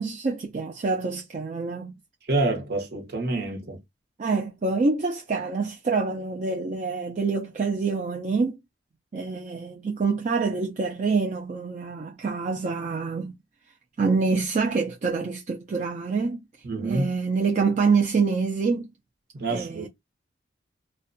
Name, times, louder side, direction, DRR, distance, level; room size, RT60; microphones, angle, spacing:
voice 1, 0.0-2.0 4.2-8.6 9.1-13.3 14.0-16.4 16.8-18.9 19.5-19.9, right 4 dB, 40° right, 0.3 m, -26 dB
voice 2, 2.3-3.8 16.6-17.1 19.3-19.9, right 2 dB, 55° right, 0.8 m, -27 dB
2.5 x 2.2 x 2.5 m
head